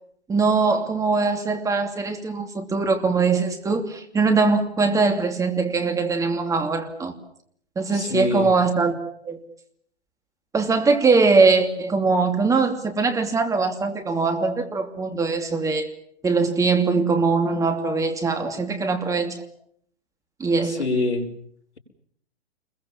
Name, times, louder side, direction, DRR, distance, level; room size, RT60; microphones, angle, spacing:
voice 1, 0.3-7.1 7.8-9.0 9.2-9.4 10.5-15.9 16.2-19.4 20.4-20.8, right 4 dB, 10° right, 2.7 m, -21 dB
voice 2, 7.9-8.5 20.6-21.3, left 2 dB, 75° left, 5.6 m, -25 dB
29.0 x 22.0 x 7.3 m
figure-of-eight pair, 125°, 34 cm